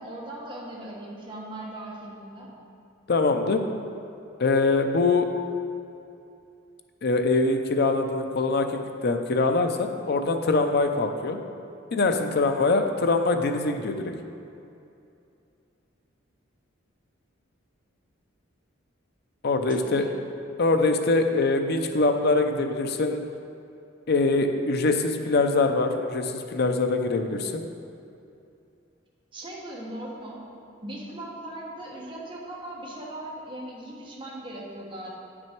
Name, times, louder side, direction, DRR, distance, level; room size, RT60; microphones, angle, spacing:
voice 1, 0.0-2.5 19.7-20.2 29.3-30.4 30.8-35.1, right 1 dB, 25° right, -5 dB, 1.4 m, -39 dB
voice 2, 3.1-3.7 4.4-5.3 7.0-11.4 11.9-14.2 19.4-20.0 20.6-23.3 24.1-27.7, left 3 dB, 55° left, 6 dB, 0.6 m, -23 dB
9.5 x 6.1 x 4.5 m, 2.6 s
head